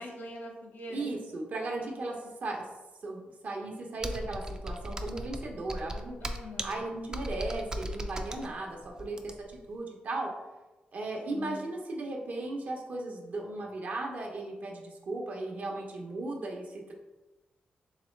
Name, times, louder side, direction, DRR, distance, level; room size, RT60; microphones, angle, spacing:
voice 1, 0.0-1.1 6.2-6.8 11.3-11.7, left 1 dB, 80° left, 0 dB, 1.1 m, -43 dB
voice 2, 0.9-2.2 2.4-2.7 3.0-6.2 6.6-9.3 9.7-10.3 10.9-16.9, right 2 dB, 60° right, 0 dB, 0.8 m, -36 dB
Computer keyboard, 4.0-9.6, right 1 dB, 20° right, 0.4 m, -37 dB
4.0 x 3.1 x 3.2 m, 1.1 s
cardioid pair, 100°, 3 cm